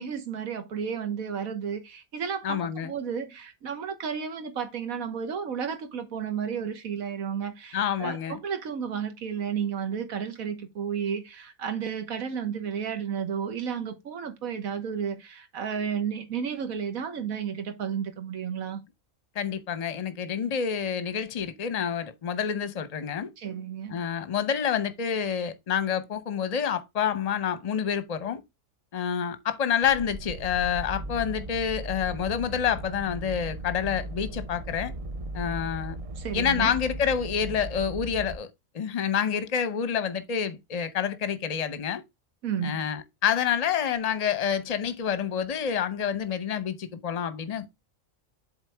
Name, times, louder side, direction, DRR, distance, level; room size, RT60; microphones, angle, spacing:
voice 1, 0.0-18.8 23.4-24.0 36.2-36.7 42.4-42.8, right 7 dB, 85° right, 1.6 m, -32 dB
voice 2, 2.4-2.9 7.7-8.4 19.3-23.3 23.9-28.4 28.9-34.9 35.3-36.0 36.3-38.5 38.7-42.0 42.6-47.7, left 8 dB, 35° left, 0.7 m, -28 dB
sound 1, 29.8-38.3, right 1 dB, 50° right, 0.4 m, -37 dB
7.9 x 4.0 x 3.3 m
omnidirectional pair, 1.4 m